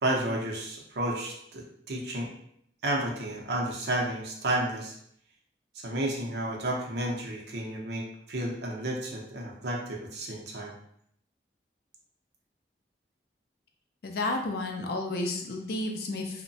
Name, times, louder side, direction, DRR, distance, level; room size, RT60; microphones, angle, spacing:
voice 1, 0.0-2.3 2.8-5.0 5.8-10.7, right 1 dB, 70° right, -1 dB, 0.6 m, -31 dB
voice 2, 14.0-16.4, left 2 dB, 60° left, 3 dB, 0.4 m, -31 dB
2.9 x 2.1 x 2.6 m, 0.70 s
head